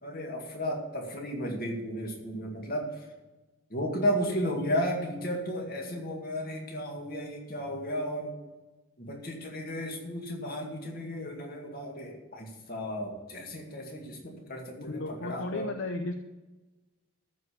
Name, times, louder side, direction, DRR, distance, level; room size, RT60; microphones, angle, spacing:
voice 1, 0.0-3.0 3.7-8.3 9.0-15.7, equal, 45° left, 1 dB, 2.2 m, -34 dB
voice 2, 14.8-16.1, left 2 dB, 60° left, 6 dB, 0.7 m, -34 dB
13.5 x 4.9 x 8.5 m, 1.1 s
head